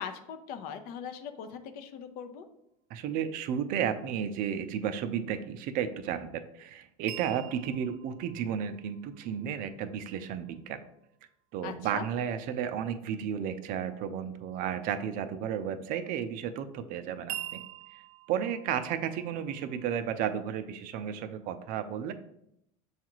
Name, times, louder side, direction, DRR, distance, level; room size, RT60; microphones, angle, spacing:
voice 1, 0.0-2.5 11.6-12.1, left 7 dB, 55° left, 8 dB, 0.6 m, -40 dB
voice 2, 2.9-10.8 11.5-17.6 17.9-18.0 18.3-22.1, right 8 dB, 50° right, 10 dB, 0.4 m, -33 dB
sound 1, 7.1-11.1 17.3-20.0, right 13 dB, 65° right, 0.8 m, -46 dB
7.0 x 2.4 x 2.9 m, 0.79 s
supercardioid pair, 100°, 18 cm